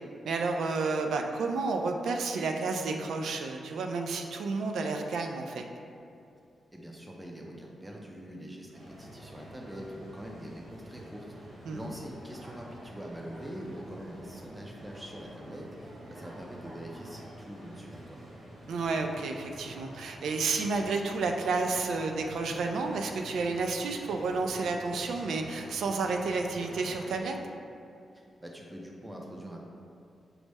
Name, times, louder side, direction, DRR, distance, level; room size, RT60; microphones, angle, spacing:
voice 1, 0.2-5.6 11.7-11.8 18.7-27.4, right 3 dB, 90° right, 4 dB, 0.3 m, -31 dB
voice 2, 6.7-18.2 28.4-29.6, equal, 10° right, -1 dB, 0.5 m, -44 dB
sound 1, 8.7-27.1, right 1 dB, 65° right, 1.0 m, -48 dB
6.1 x 2.1 x 3.3 m, 2.5 s
wide cardioid pair, 170°, 0 cm